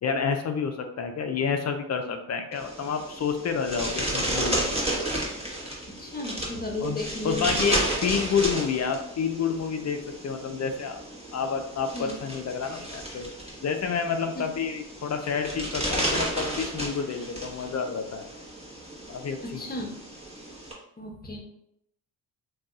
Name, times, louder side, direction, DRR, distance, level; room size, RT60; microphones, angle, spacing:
voice 1, 0.0-4.7 6.8-11.0 11.3-13.3 13.6-18.2 19.1-19.7, left 6 dB, 40° left, 6 dB, 0.5 m, -29 dB
sound 1, 2.5-20.7, right 1 dB, 15° right, 1.0 m, -33 dB
voice 2, 5.9-7.5 11.9-12.2 19.6-19.9 21.0-21.4, left 2 dB, 20° left, 1 dB, 0.9 m, -34 dB
2.6 x 2.3 x 3.6 m, 0.75 s
supercardioid pair, 70°, 42 cm